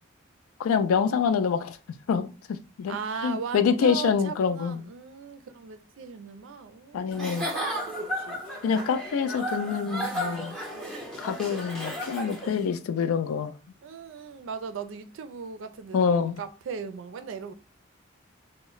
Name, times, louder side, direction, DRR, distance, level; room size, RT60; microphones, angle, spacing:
voice 1, 0.6-1.8 2.1-3.0 3.2-4.8 6.9-7.5 8.6-10.6 11.2-13.5 15.9-16.4, left 6 dB, 90° left, 0.3 m, -26 dB
voice 2, 2.9-8.4 13.8-17.5, right 6 dB, 70° right, 0.4 m, -38 dB
Giggle / Chuckle chortle, 7.1-12.6, equal, 5° left, 0.7 m, -34 dB
2.1 x 2.0 x 3.7 m
head